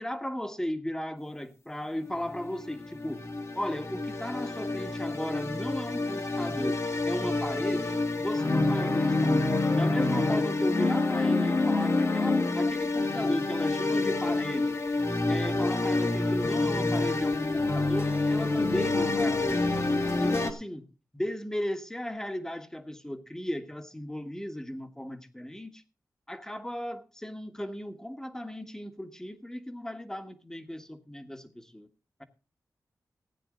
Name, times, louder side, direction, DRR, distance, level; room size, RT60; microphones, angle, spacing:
voice 1, 0.0-3.2 3.5-9.4 9.7-14.8 15.3-19.8 20.2-20.8 21.1-25.8 26.3-31.9, equal, 10° left, 1.5 m, -36 dB
sound 1, 2.1-20.5, left 2 dB, 45° left, 1.8 m, -27 dB
16.0 x 9.3 x 3.8 m
wide cardioid pair, 90°, 7 cm